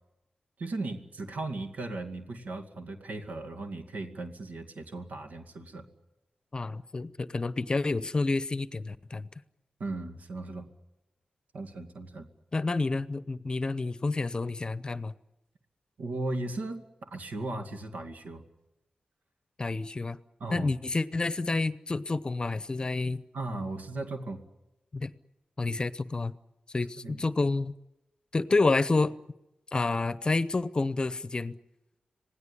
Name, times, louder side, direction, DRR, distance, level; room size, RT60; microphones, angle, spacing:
voice 1, 0.6-5.8 9.8-10.7 11.5-12.3 16.0-18.4 20.4-20.7 23.3-24.4 27.0-27.2, right 2 dB, 85° right, 2.3 m, -37 dB
voice 2, 6.5-9.3 12.5-15.1 19.6-20.2 20.5-23.2 24.9-25.1 25.6-26.3 26.7-27.7 28.3-29.2 29.7-31.6, left 3 dB, 35° left, 0.8 m, -29 dB
26.5 x 18.0 x 9.9 m
wide cardioid pair, 105°, 3 cm